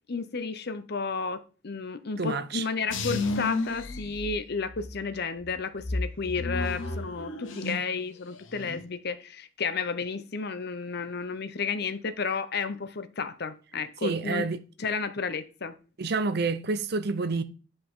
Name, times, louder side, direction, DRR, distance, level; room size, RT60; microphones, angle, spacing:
voice 1, 0.1-14.5 14.8-15.7, left 5 dB, 55° left, 0.8 m, -32 dB
voice 2, 2.2-2.7 14.0-14.6 16.0-17.4, right 3 dB, 55° right, 0.7 m, -28 dB
sound 1, 2.9-4.9 5.4-8.0 8.3-8.8, left 3 dB, 85° left, 1.1 m, -32 dB
10.0 x 5.3 x 3.7 m
head